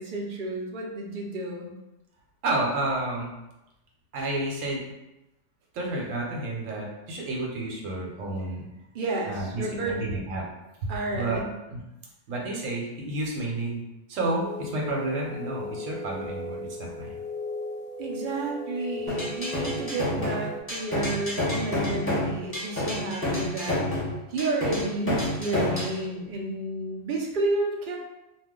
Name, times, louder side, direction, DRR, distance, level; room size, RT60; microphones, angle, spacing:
voice 1, 0.0-1.7 8.9-10.1 10.9-11.5 18.0-23.8 24.3-28.0, right 2 dB, 55° right, 0 dB, 0.6 m, -31 dB
voice 2, 2.4-3.3 4.1-4.9 5.7-8.7 9.3-10.4 10.8-11.4 11.7-11.8 12.3-13.8 14.1-17.1 22.7-22.8, right 2 dB, 85° right, -1 dB, 1.1 m, -30 dB
sound 1, 14.4-20.6, left 2 dB, 70° left, 0.4 m, -36 dB
sound 2, 19.1-26.0, left 1 dB, 10° left, 0.9 m, -29 dB
2.5 x 2.2 x 3.6 m, 0.93 s
omnidirectional pair, 1.3 m